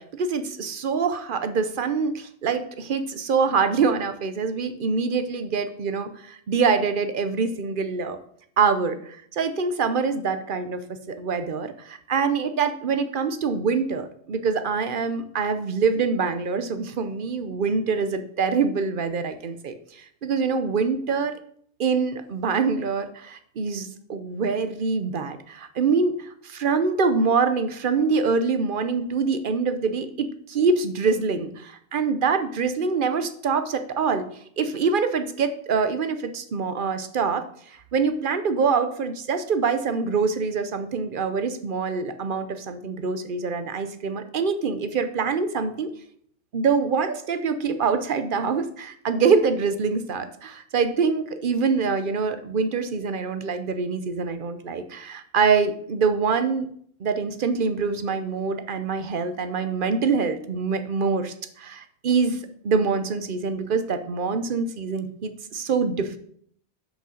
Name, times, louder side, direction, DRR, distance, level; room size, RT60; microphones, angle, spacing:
voice 1, 0.0-8.2 8.6-10.8 11.1-21.3 21.8-34.3 34.6-45.9 46.5-56.7 57.0-66.2, right 5 dB, 55° right, 9 dB, 0.9 m, -25 dB
6.6 x 5.2 x 6.4 m, 0.63 s
omnidirectional pair, 1.1 m